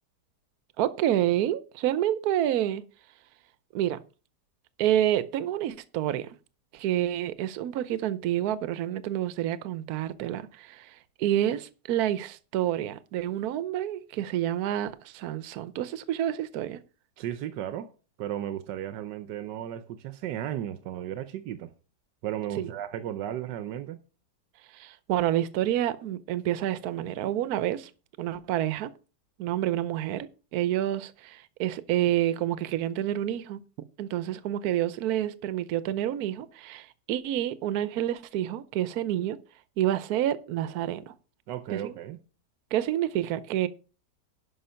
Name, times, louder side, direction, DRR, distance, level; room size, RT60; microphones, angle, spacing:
voice 1, 0.8-2.8 3.7-4.0 4.8-6.4 6.7-16.8 22.6-22.7 24.7-27.9 28.2-28.9 29.4-33.6 34.0-39.4 39.8-41.1 41.7-41.9 42.7-43.7, right 12 dB, 70° right, 1.2 m, -28 dB
voice 2, 17.2-17.9 18.2-21.7 22.2-24.0 41.5-42.2, right 11 dB, 85° right, 1.4 m, -35 dB
11.5 x 5.7 x 5.6 m
omnidirectional pair, 1.8 m